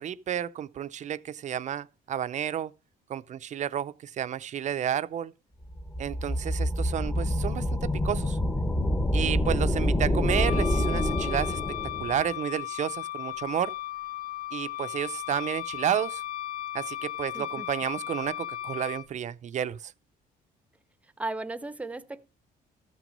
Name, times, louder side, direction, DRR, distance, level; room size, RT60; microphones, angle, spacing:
voice 1, 0.0-2.7 3.1-5.3 6.0-8.4 9.1-13.7 14.5-16.2 16.7-19.9, right 10 dB, 45° right, 0.5 m, -31 dB
sound 1, 5.7-12.2, left 1 dB, 15° left, 0.9 m, -27 dB
voice 2, 9.2-9.6 17.3-17.7 21.2-22.3, right 2 dB, 10° right, 0.7 m, -37 dB
Wind instrument woodwind instrument, 10.3-19.1, left 14 dB, 55° left, 0.8 m, -36 dB
13.5 x 6.1 x 5.3 m
cardioid pair, 110°, 17 cm